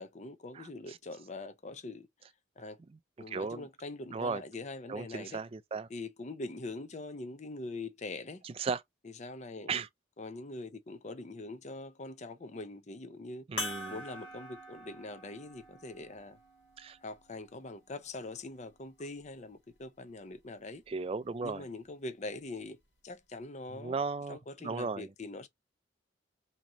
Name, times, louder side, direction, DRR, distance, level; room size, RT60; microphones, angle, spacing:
voice 1, 0.0-2.1 2.6-2.8 3.2-5.4 5.9-8.4 9.2-9.7 10.2-13.5 13.9-16.4 17.0-20.8 21.4-22.8 23.0-24.0 24.3-25.5, left 2 dB, 35° left, 0.5 m, -43 dB
voice 2, 0.5-1.0 2.9-3.0 3.3-3.7 4.1-4.4 4.9-5.9 8.4-8.8 9.7-9.9 13.5-14.0 16.8-17.0 20.9-21.7 23.7-25.1, right 4 dB, 30° right, 0.3 m, -36 dB
sound 1, 13.6-18.4 19.2-19.3 21.4-21.5, left 2 dB, 70° left, 1.7 m, -44 dB
3.0 x 2.9 x 3.6 m
head